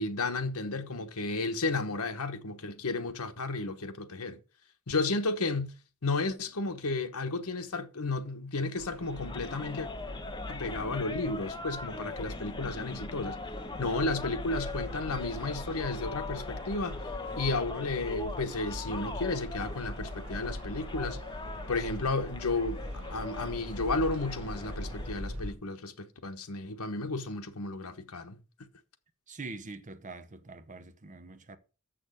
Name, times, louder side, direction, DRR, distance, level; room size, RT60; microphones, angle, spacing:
voice 1, 0.0-4.4 4.9-5.7 6.0-9.9 10.5-13.4 13.8-17.0 17.4-21.2 21.7-22.8 23.1-28.4, left 3 dB, 80° left, 1.1 m, -33 dB
sound 1, 8.8-25.5, equal, 70° right, 1.5 m, -41 dB
sound 2, 9.0-25.2, left 3 dB, 20° left, 0.7 m, -42 dB
voice 2, 29.3-31.6, right 3 dB, 35° right, 0.8 m, -44 dB
7.1 x 6.3 x 6.3 m
head